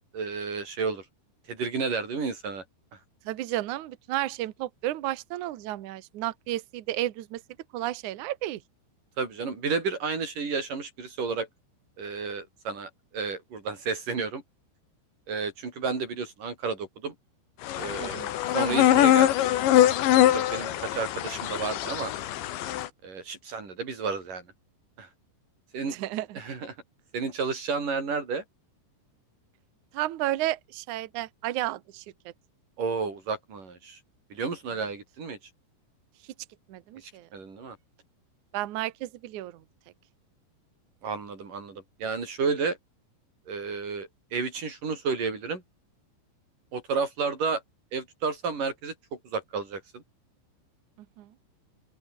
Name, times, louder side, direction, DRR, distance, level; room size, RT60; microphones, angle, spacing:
voice 1, 0.1-1.0 1.5-2.6 9.2-11.5 12.0-14.4 15.3-17.1 17.7-19.3 20.3-22.1 23.0-24.4 25.0-25.1 25.7-25.9 26.4-26.7 27.1-28.4 32.8-34.0 34.3-35.4 37.0-37.8 41.0-42.8 43.5-45.6 46.7-47.6 47.9-48.9 49.2-50.0, right 5 dB, 45° right, 7.1 m, -31 dB
voice 2, 3.2-7.4 7.7-8.6 18.0-18.3 20.6-20.7 25.9-26.4 29.9-32.3 36.2-36.3 36.7-37.3 38.5-39.6 51.2-51.3, right 15 dB, 80° right, 1.7 m, -32 dB
sound 1, 17.6-22.9, left 12 dB, 75° left, 4.0 m, -23 dB
open air
omnidirectional pair, 5.2 m